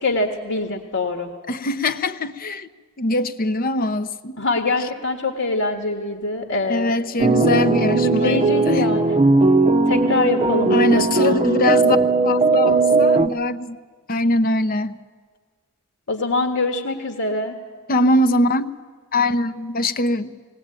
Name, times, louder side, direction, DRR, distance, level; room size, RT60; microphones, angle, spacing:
voice 1, 0.0-1.3 4.4-6.9 8.0-9.2 9.8-11.4 16.1-17.6, left 2 dB, 75° left, 3 dB, 1.6 m, -24 dB
voice 2, 1.5-2.7 3.0-4.3 6.7-8.9 10.7-12.0 12.2-13.8 14.1-15.0 17.9-18.8 19.1-20.3, left 1 dB, 45° left, 12 dB, 0.7 m, -22 dB
sound 1, 7.2-13.3, right 3 dB, 25° right, 0.7 m, -18 dB
20.5 x 18.0 x 8.9 m, 1.5 s
head